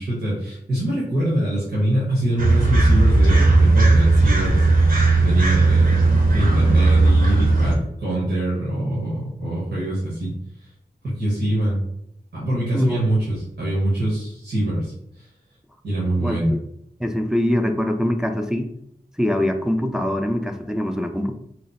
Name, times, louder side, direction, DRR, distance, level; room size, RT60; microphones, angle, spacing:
voice 1, 0.0-4.7 5.2-10.4 11.0-11.8 12.3-15.3 15.8-16.5, right 1 dB, 85° right, -7 dB, 1.1 m, -24 dB
sound 1, 2.4-7.8, right 2 dB, 60° right, 0.8 m, -16 dB
voice 2, 17.0-18.7 19.2-21.3, left 1 dB, 5° right, 4 dB, 0.4 m, -23 dB
3.0 x 2.0 x 4.1 m, 0.75 s
cardioid pair, 40°, 17 cm